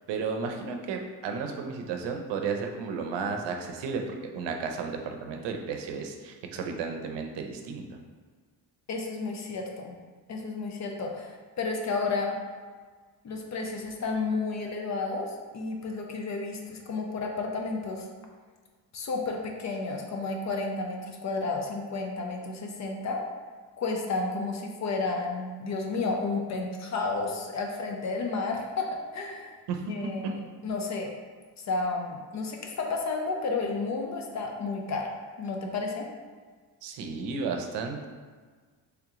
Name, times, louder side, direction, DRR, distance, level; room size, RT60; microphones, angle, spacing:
voice 1, 0.1-8.0 29.7-30.3 36.8-38.1, right 5 dB, 85° right, 4 dB, 0.6 m, -33 dB
voice 2, 8.9-10.0 10.3-12.4 13.2-18.1 18.9-23.2 23.8-29.5 29.9-31.1 31.7-35.1 35.4-36.1, left 3 dB, 40° left, 2 dB, 0.5 m, -32 dB
3.4 x 3.0 x 3.6 m, 1.5 s
cardioid pair, 135°, 41 cm